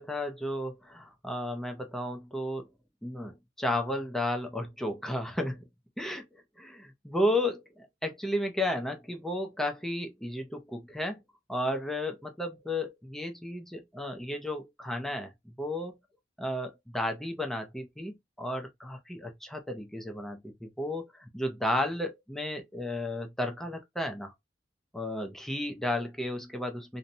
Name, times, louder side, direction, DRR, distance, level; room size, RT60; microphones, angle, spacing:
voice 1, 0.0-2.7 3.0-5.6 6.0-6.3 6.6-11.2 11.5-15.3 15.6-15.9 16.4-24.3 24.9-27.0, left 1 dB, ahead, 0.4 m, -33 dB
2.7 x 2.1 x 2.6 m
head